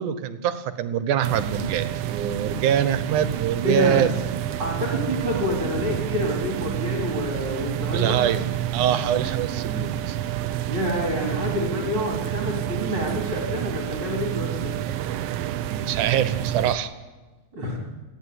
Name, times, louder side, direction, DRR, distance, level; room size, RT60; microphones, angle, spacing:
voice 1, 0.0-4.1 7.9-8.5 8.7-10.2 15.7-16.9, right 9 dB, 90° right, 11 dB, 2.6 m, -24 dB
sound 1, 1.2-16.8, right 12 dB, 70° right, 1.5 m, -29 dB
voice 2, 3.6-4.1 4.6-8.2 10.7-14.7 17.5-17.8, left 1 dB, 45° right, -2 dB, 4.7 m, -27 dB
29.0 x 10.5 x 9.8 m, 1.2 s
omnidirectional pair, 3.4 m